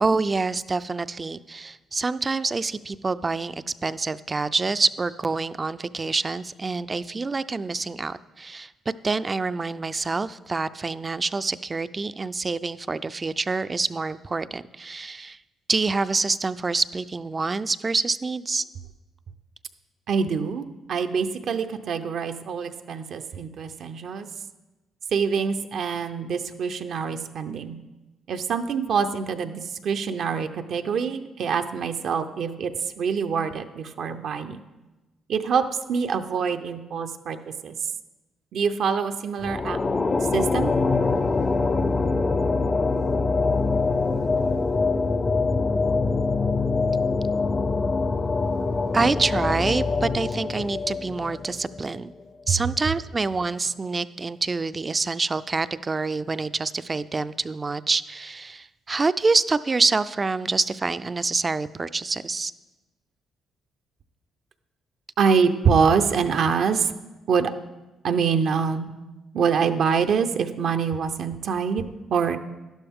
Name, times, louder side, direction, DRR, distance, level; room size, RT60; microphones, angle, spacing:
voice 1, 0.0-8.7 9.0-15.4 15.7-18.6 48.9-52.1 52.5-62.5, right 3 dB, 30° right, 15 dB, 0.4 m, -26 dB
voice 2, 20.1-24.3 25.1-27.8 28.3-32.7 33.0-34.6 35.3-37.4 37.6-37.7 38.5-39.8 40.3-40.7 52.5-52.6 65.2-66.9 67.3-67.5 68.0-68.9 69.3-71.8 72.1-72.4, right 6 dB, 65° right, 8 dB, 0.6 m, -25 dB
sound 1, 39.4-52.0, left 3 dB, 30° left, 0.5 m, -24 dB
11.5 x 11.5 x 3.6 m, 1.1 s
cardioid pair, 90°, 0 cm